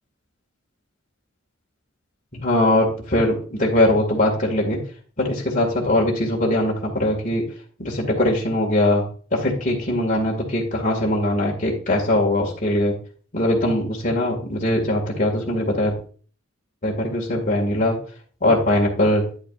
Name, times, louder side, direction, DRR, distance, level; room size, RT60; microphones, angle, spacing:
voice 1, 2.3-4.8 5.2-7.4 7.8-9.1 9.3-13.0 13.3-15.9 16.8-18.0 18.4-19.2, left 1 dB, 40° left, -2 dB, 2.0 m, -21 dB
9.9 x 8.8 x 2.5 m, 0.41 s
head